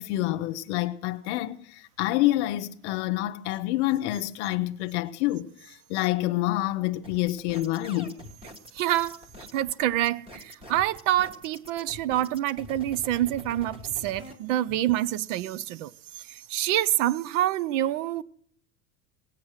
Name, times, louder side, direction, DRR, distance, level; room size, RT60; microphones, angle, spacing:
voice 1, 0.0-8.1, left 16 dB, 60° left, 0.7 m, -27 dB
sound 1, 7.0-14.3, left 1 dB, 15° right, 1.2 m, -45 dB
voice 2, 8.8-9.2 9.5-15.9 16.3-18.2, right 13 dB, 70° right, 0.6 m, -27 dB
17.5 x 8.7 x 6.4 m
supercardioid pair, 170°, 40 cm